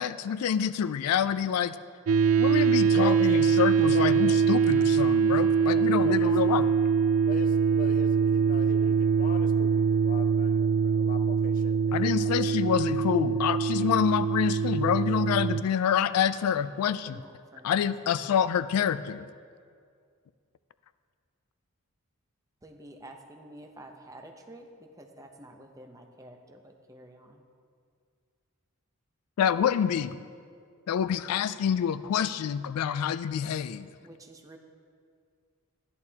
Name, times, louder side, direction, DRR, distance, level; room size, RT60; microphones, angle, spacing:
voice 1, 0.0-1.8 2.4-6.7 11.9-17.2 17.6-19.3 29.4-30.2 30.9-33.9, left 8 dB, 85° left, 14 dB, 0.3 m, -27 dB
sound 1, 2.1-15.6, right 6 dB, 70° right, 0.3 m, -23 dB
voice 2, 2.9-3.3 3.9-4.4 5.4-6.3 7.3-12.5, left 3 dB, 40° left, 7 dB, 0.6 m, -41 dB
voice 3, 17.0-17.7 22.6-27.4 34.0-34.6, right 1 dB, 15° right, 4 dB, 0.7 m, -49 dB
12.5 x 11.0 x 2.8 m, 2.2 s
head